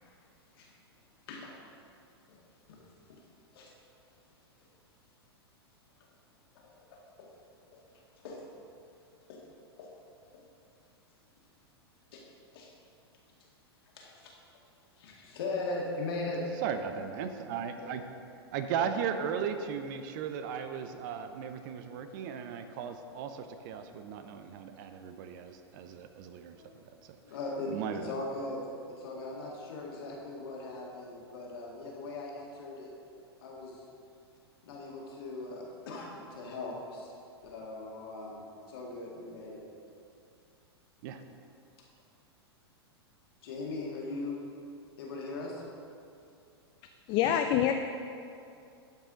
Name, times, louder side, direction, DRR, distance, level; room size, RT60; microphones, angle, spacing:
voice 1, 6.5-7.3 7.7-7.8 8.2-8.4 9.3-9.4 9.8-9.9 12.1-12.2 12.5-12.7 13.9-14.3 15.0-16.4 17.8-17.9 26.5-26.7 27.2-28.6 28.9-32.9 33.4-33.8 34.6-37.1 37.4-39.6 43.4-44.4 45.0-45.6, left 2 dB, 60° left, -2 dB, 2.0 m, -39 dB
voice 2, 16.4-18.0 18.5-28.2 28.9-29.0 41.0-41.2, right 7 dB, 50° right, 8 dB, 0.6 m, -37 dB
voice 3, 47.1-47.7, left 10 dB, 35° left, 6 dB, 0.4 m, -25 dB
11.5 x 5.5 x 3.9 m, 2.5 s
hypercardioid pair, 100°, 14 cm